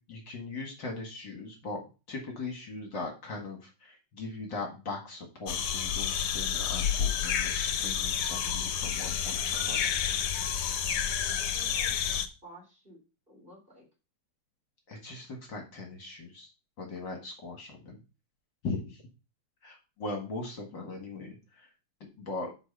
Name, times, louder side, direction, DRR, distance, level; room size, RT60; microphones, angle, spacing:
voice 1, 0.1-1.8 2.1-9.8 14.9-16.5 16.8-18.0 18.6-19.0 19.6-21.7 22.2-22.5, left 3 dB, 55° left, 2 dB, 2.4 m, -39 dB
sound 1, 5.5-12.3, left 8 dB, 90° left, 1.7 m, -30 dB
voice 2, 11.2-13.0 13.3-13.8, equal, 25° right, -2 dB, 3.7 m, -53 dB
6.2 x 5.4 x 6.7 m, 0.31 s
omnidirectional pair, 2.4 m